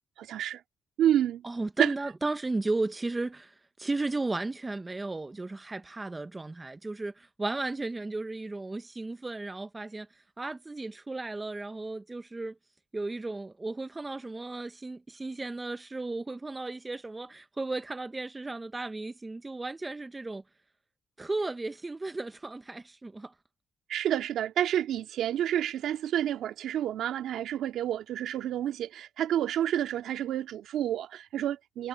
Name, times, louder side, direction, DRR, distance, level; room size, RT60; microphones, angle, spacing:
voice 1, 0.2-0.6 1.0-1.4 1.8-1.9 23.9-31.9, right 11 dB, 75° right, 2.6 m, -29 dB
voice 2, 1.4-10.1 10.4-12.5 12.9-20.4 21.2-23.3, right 2 dB, 20° right, 0.9 m, -34 dB
cardioid pair, 90°, 0 cm